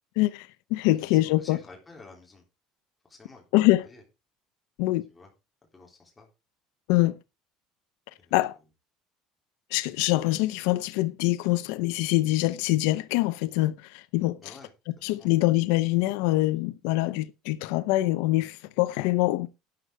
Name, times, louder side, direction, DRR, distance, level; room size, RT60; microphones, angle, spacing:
voice 1, 0.2-1.6 3.5-3.8 4.8-5.0 6.9-7.2 8.3-8.6 9.7-14.4 15.0-19.5, left 18 dB, 85° left, 0.7 m, -24 dB
voice 2, 1.0-2.4 3.0-3.4 3.8-4.0 5.1-5.3 5.7-6.3 8.2-8.5 14.4-14.7 15.1-15.5, left 3 dB, 10° left, 3.6 m, -51 dB
12.0 x 7.8 x 4.7 m
cardioid pair, 175°, 0 cm